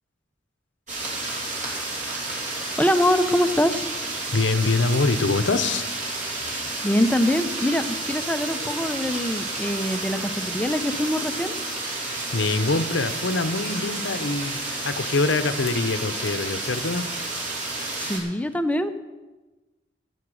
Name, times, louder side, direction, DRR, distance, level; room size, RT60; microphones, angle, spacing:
sound 1, 0.9-18.2, right 2 dB, 40° right, 2.9 m, -31 dB
voice 1, 2.8-3.8 6.5-11.5 18.0-18.9, left 1 dB, 10° left, 10 dB, 0.6 m, -24 dB
voice 2, 4.3-5.8 12.1-14.6 14.8-17.0, left 3 dB, 80° left, 12 dB, 0.9 m, -24 dB
15.0 x 8.1 x 6.3 m, 1.2 s
head